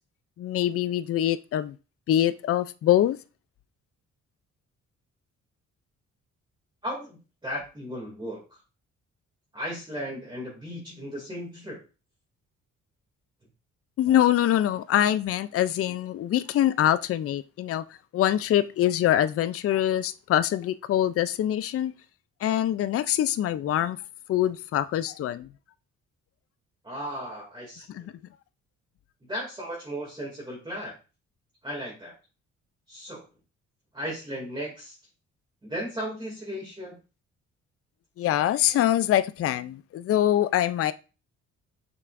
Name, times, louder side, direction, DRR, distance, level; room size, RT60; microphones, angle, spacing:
voice 1, 0.4-1.8 2.1-3.2 14.0-17.8 18.1-21.9 22.4-24.0 24.3-25.5 27.9-28.1 38.2-40.9, left 12 dB, 50° left, 0.4 m, -24 dB
voice 2, 6.8-7.2 7.4-8.6 9.5-11.8 26.8-28.1 29.3-30.9 31.6-32.1 32.9-33.2 33.9-34.9 35.6-36.9, equal, 15° right, 2.4 m, -35 dB
8.0 x 5.7 x 2.5 m
cardioid pair, 120°, 29 cm